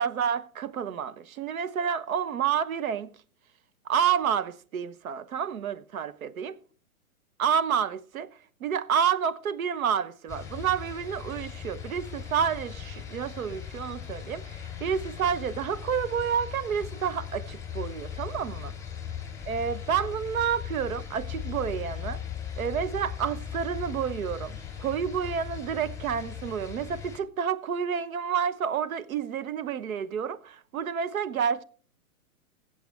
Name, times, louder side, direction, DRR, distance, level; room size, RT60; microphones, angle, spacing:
voice 1, 0.0-3.1 3.9-6.6 7.4-8.3 8.6-18.7 19.5-22.2 22.6-31.6, right 7 dB, 70° right, 1.1 m, -29 dB
sound 1, 10.3-27.2, left 8 dB, 5° left, 2.6 m, -38 dB
20.0 x 8.1 x 3.4 m
hypercardioid pair, 125°, 43 cm